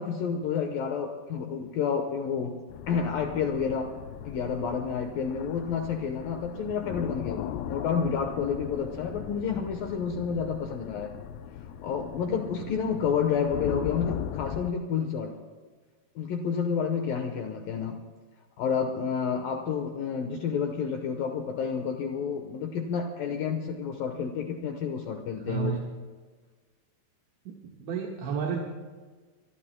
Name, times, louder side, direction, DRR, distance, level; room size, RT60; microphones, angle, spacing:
voice 1, 0.0-2.6 2.9-4.0 4.2-11.1 11.8-15.3 16.2-18.0 18.6-25.8, left 6 dB, 70° left, 4 dB, 2.4 m, -30 dB
sound 1, 2.7-14.7, left 10 dB, 85° left, 2.0 m, -39 dB
voice 2, 25.4-25.8 27.5-28.6, right 7 dB, 90° right, -2 dB, 3.9 m, -31 dB
25.0 x 23.5 x 2.2 m, 1.4 s
omnidirectional pair, 4.9 m